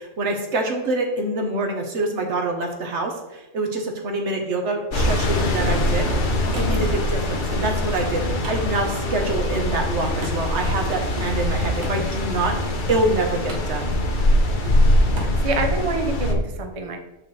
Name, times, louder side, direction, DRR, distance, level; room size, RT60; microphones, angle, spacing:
voice 1, 0.0-13.9, right 2 dB, 60° right, 3 dB, 1.3 m, -26 dB
sound 1, 4.9-16.4, left 1 dB, 45° left, 0.8 m, -22 dB
Wood, 5.7-15.7, right 1 dB, 90° right, 1.7 m, -43 dB
sound 2, 7.6-7.9 9.1-9.2 9.5-9.8 11.1-11.5 12.9-13.2 14.6-15.0, right 1 dB, 20° right, 1.6 m, -40 dB
voice 2, 15.1-17.1, right 3 dB, 35° right, 4 dB, 0.6 m, -27 dB
6.9 x 5.6 x 3.2 m, 0.99 s
omnidirectional pair, 1.3 m